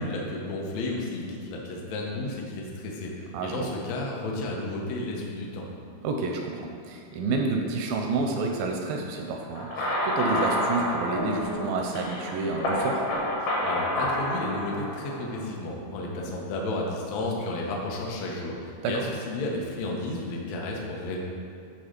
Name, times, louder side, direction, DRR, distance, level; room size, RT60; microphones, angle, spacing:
voice 1, 0.0-5.7 13.4-21.2, left 2 dB, 80° left, -2 dB, 1.5 m, -32 dB
voice 2, 3.3-3.7 6.0-13.0 18.8-19.0, right 3 dB, 80° right, 2 dB, 2.1 m, -29 dB
sound 1, 9.6-15.4, left 1 dB, 55° left, 1.7 m, -29 dB
9.5 x 3.8 x 5.1 m, 2.4 s
omnidirectional pair, 4.5 m